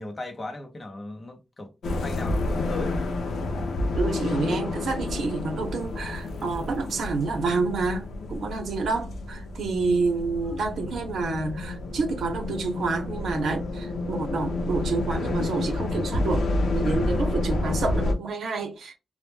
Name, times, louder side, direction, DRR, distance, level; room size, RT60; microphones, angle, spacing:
voice 1, 0.0-1.7 2.0-3.0, left 2 dB, 25° left, 0.6 m, -37 dB
sound 1, 1.8-18.1, left 2 dB, 85° left, 0.5 m, -29 dB
voice 2, 4.0-16.5 16.7-18.9, right 3 dB, 85° right, 0.6 m, -28 dB
2.1 x 2.1 x 3.0 m
wide cardioid pair, 160°, 0 cm